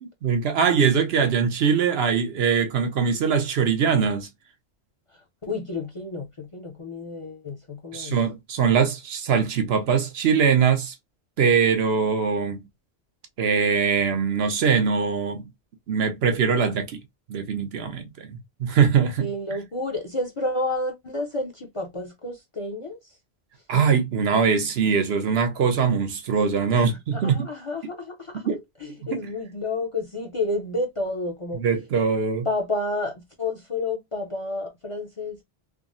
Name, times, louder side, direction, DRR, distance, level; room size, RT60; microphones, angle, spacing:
voice 1, 0.0-4.3 7.9-10.9 11.4-12.6 13.4-15.5 15.9-17.0 17.3-19.3 23.7-27.5 28.4-28.6 29.0-29.2 31.5-32.5, right 6 dB, 75° right, 1.0 m, -22 dB
voice 2, 5.4-8.2 19.2-23.0 26.7-28.4 28.8-31.6 32.5-35.4, left 2 dB, 40° left, 0.6 m, -30 dB
3.6 x 2.0 x 2.5 m
omnidirectional pair, 1.1 m